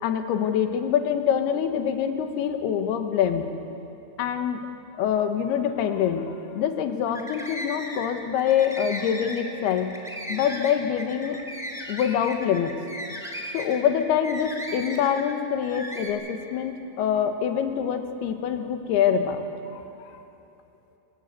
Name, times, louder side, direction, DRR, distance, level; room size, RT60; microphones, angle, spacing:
voice 1, 0.0-3.5 4.2-4.6 5.0-6.3 6.5-9.9 10.3-11.4 11.9-12.7 13.5-19.5 19.7-19.8, left 8 dB, 75° left, 7 dB, 2.9 m, -25 dB
sound 1, 7.1-8.1 8.4-15.3 15.6-16.1, equal, ahead, 0.7 m, -36 dB
25.5 x 13.0 x 8.1 m, 2.9 s
omnidirectional pair, 5.0 m